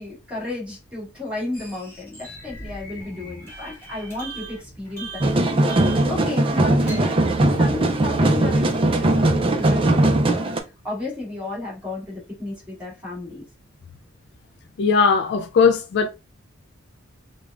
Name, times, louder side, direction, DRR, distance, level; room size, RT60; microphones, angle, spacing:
voice 1, 0.0-5.1 5.4-7.2 7.6-10.5 10.8-13.4, left 2 dB, 5° right, 1.7 m, -33 dB
sound 1, 1.5-7.0, right 2 dB, 10° left, 2.1 m, -40 dB
sound 2, 5.2-10.6, right 1 dB, 25° right, 0.4 m, -19 dB
voice 2, 14.8-16.1, left 5 dB, 55° left, 0.3 m, -18 dB
5.0 x 2.2 x 2.4 m
head